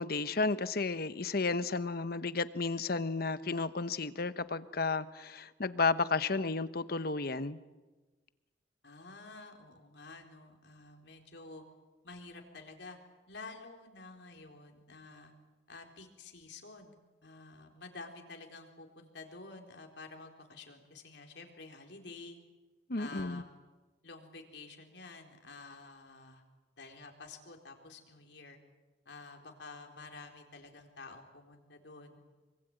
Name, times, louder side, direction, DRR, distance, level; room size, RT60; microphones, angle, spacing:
voice 1, 0.0-7.6 22.9-23.4, left 3 dB, 55° left, 13 dB, 1.1 m, -32 dB
voice 2, 8.8-11.6 12.0-13.0 13.3-15.3 15.7-22.4 23.0-23.6 24.0-26.4 26.8-28.6 29.1-32.2, left 3 dB, 75° left, 3 dB, 4.1 m, -50 dB
25.0 x 24.0 x 9.0 m, 1.2 s
head